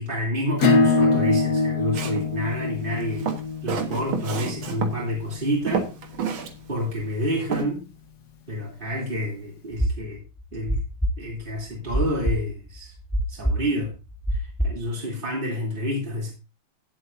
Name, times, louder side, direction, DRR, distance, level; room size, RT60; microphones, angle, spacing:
voice 1, 0.0-3.3 3.6-5.9 6.7-7.8 8.5-10.2 10.5-10.8 11.2-12.9 13.3-13.9 14.3-16.3, equal, 25° right, -3 dB, 3.6 m, -29 dB
Acoustic guitar / Strum, 0.6-5.8, left 3 dB, 55° left, 1.9 m, -24 dB
Walk footsteps, 1.9-2.3 3.0-5.0 5.3-5.4 5.7-6.5 6.8-6.9 7.5-7.6, right 7 dB, 85° right, 2.2 m, -29 dB
sound 1, 9.7-14.9, equal, ahead, 1.6 m, -25 dB
17.0 x 7.8 x 2.8 m, 0.29 s
omnidirectional pair, 2.2 m